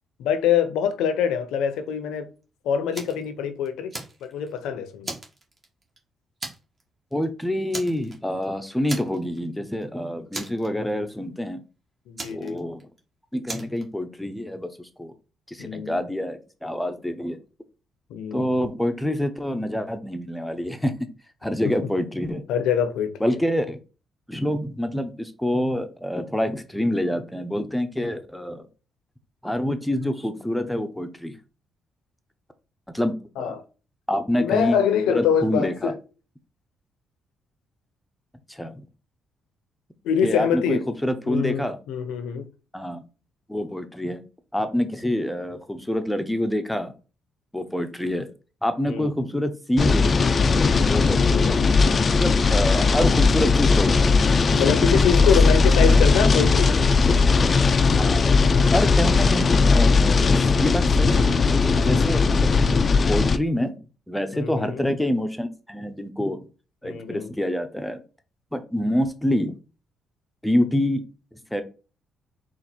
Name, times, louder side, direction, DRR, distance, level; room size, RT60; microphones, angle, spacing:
voice 1, 0.2-2.3 2.6-3.9 4.2-5.1 12.1-12.6 15.6-16.0 18.1-18.5 22.5-23.1 33.4-33.6 34.4-35.9 40.0-40.8 41.3-42.5 48.9-49.1 51.2-51.5 54.5-56.8 64.3-64.8 66.8-67.3, left 8 dB, 90° left, 0.7 m, -24 dB
Fire, 2.9-3.3 3.7-4.6 5.0-6.0 6.4-6.8 7.1-7.3 7.7-8.4 8.9-9.5 9.7-9.8 10.3-11.1 12.2-13.0 13.5-13.8, right 2 dB, 30° right, 1.3 m, -36 dB
voice 2, 7.1-11.6 12.3-12.8 13.3-15.1 15.5-17.4 18.3-20.9 21.4-22.4 23.2-23.8 24.3-28.7 29.4-31.4 32.9-33.6 34.1-34.8 35.1-35.9 38.5-38.9 40.2-41.8 42.7-43.0 43.5-44.2 44.5-46.9 47.5-48.3 48.6-50.2 50.9-51.6 52.2-54.1 55.8-56.0 58.0-58.2 58.7-62.5 63.1-63.8 64.1-66.4 66.8-68.0 68.5-69.6 70.4-71.0 71.3-71.6, left 1 dB, 5° left, 0.7 m, -26 dB
sound 1, 49.8-63.4, left 4 dB, 40° left, 0.4 m, -18 dB
4.1 x 2.5 x 4.3 m
cardioid pair, 90°, 0 cm